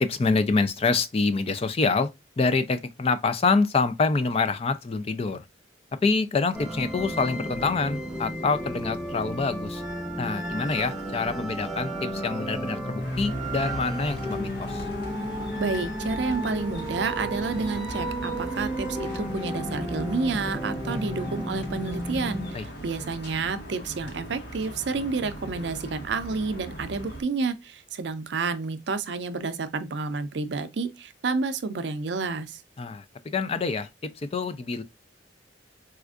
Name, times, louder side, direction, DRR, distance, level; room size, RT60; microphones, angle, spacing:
voice 1, 0.0-2.1 2.4-5.4 6.0-9.8 10.2-14.8 22.5-22.6 32.8-33.0 33.3-33.9 34.2-34.8, left 4 dB, 35° left, 0.4 m, -26 dB
sound 1, 6.5-22.5, right 1 dB, ahead, 0.8 m, -33 dB
sound 2, 13.0-27.2, equal, 60° left, 1.1 m, -39 dB
voice 2, 15.6-32.6, right 4 dB, 65° right, 0.5 m, -30 dB
4.3 x 2.4 x 2.3 m
head